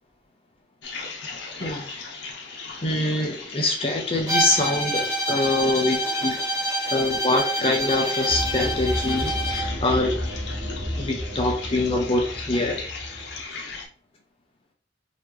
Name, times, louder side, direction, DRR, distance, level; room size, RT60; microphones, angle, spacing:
sound 1, 0.8-13.9, left 4 dB, 80° left, 0.9 m, -37 dB
voice 1, 2.8-6.4 6.9-10.2 11.0-12.8, left 2 dB, 30° left, 2 dB, 0.6 m, -24 dB
Bowed string instrument, 4.3-9.7, right 1 dB, 20° right, 0.9 m, -27 dB
sound 2, 8.3-13.4, equal, 60° right, 1.3 m, -32 dB
4.0 x 2.8 x 3.1 m, 0.42 s
head